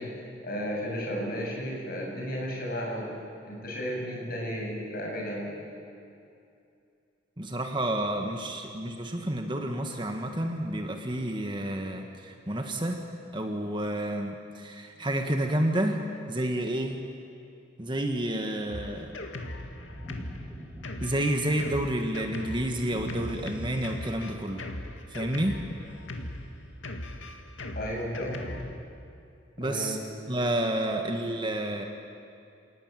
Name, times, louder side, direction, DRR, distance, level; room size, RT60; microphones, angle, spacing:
voice 1, 0.0-3.1 3.4-5.5 8.1-8.2 18.6-19.3 27.7-28.6 29.6-29.9, equal, 50° left, -2 dB, 7.7 m, -34 dB
voice 2, 7.4-13.0 13.3-16.0 16.3-17.0 17.8-19.2 21.0-24.7 25.1-25.6 29.6-30.0 30.3-31.9, right 1 dB, 25° right, 3 dB, 1.7 m, -30 dB
Drum kit, 18.7-28.8, left 1 dB, 85° left, 2.2 m, -39 dB
sound 1, 19.9-21.6 22.7-24.4, equal, 5° right, 2.7 m, -45 dB
28.0 x 18.5 x 9.2 m, 2.5 s
head